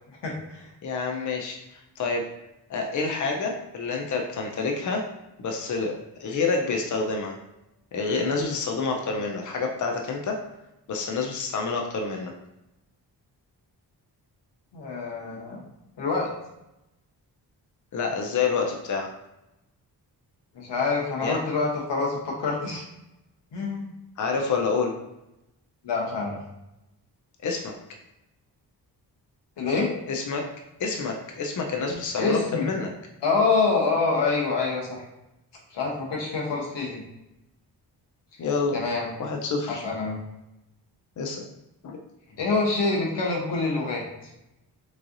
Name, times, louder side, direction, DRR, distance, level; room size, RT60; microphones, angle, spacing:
voice 1, 0.2-0.7 14.7-15.6 16.0-16.3 20.5-22.8 23.5-23.8 25.8-26.4 29.6-29.9 32.1-32.7 33.2-35.0 35.7-37.0 38.7-39.1 39.7-40.2 42.4-44.0, left 4 dB, 85° left, -1 dB, 1.1 m, -26 dB
voice 2, 0.8-2.2 2.7-5.0 5.4-5.9 6.2-7.4 7.9-10.4 10.9-12.3 17.9-19.1 21.2-21.4 24.2-24.9 27.4-27.7 30.1-30.5 30.8-32.9 38.4-38.8 39.2-39.8 41.2-41.5 41.8-42.0, left 4 dB, 45° left, 1 dB, 0.6 m, -28 dB
3.6 x 3.2 x 2.6 m, 0.90 s
cardioid pair, 65°, 41 cm